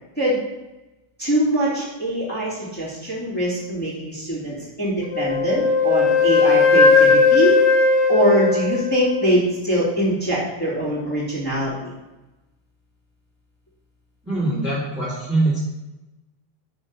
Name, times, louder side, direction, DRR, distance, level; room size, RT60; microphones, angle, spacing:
voice 1, 1.2-7.6 8.1-11.9, right 1 dB, 5° left, -9 dB, 0.7 m, -23 dB
Wind instrument woodwind instrument, 5.1-9.3, left 4 dB, 80° left, 2.6 m, -17 dB
voice 2, 14.2-15.6, right 2 dB, 15° right, -8 dB, 0.3 m, -22 dB
6.1 x 4.6 x 5.3 m, 1.0 s
omnidirectional pair, 4.8 m